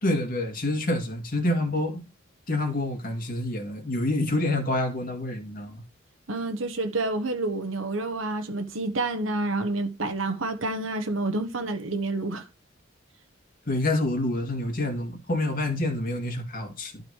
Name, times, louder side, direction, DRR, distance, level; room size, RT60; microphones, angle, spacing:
voice 1, 0.0-2.0 2.5-5.8 13.7-17.0, left 1 dB, 50° left, 2.1 m, -27 dB
voice 2, 6.3-12.4, right 2 dB, 85° right, 1.2 m, -29 dB
12.0 x 4.1 x 4.7 m
head